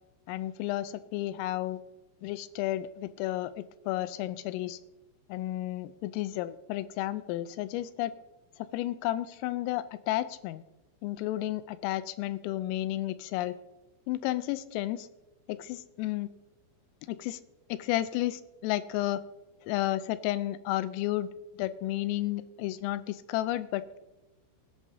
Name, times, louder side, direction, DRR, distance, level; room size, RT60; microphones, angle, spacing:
voice 1, 0.3-1.8 2.2-4.8 5.3-8.1 8.7-10.6 11.0-13.5 14.1-15.1 15.5-16.3 17.1-17.4 17.7-19.2 19.7-21.3 21.6-24.0, left 15 dB, 90° left, 13 dB, 3.3 m, -32 dB
22.5 x 10.5 x 2.8 m, 1.0 s
omnidirectional pair, 5.8 m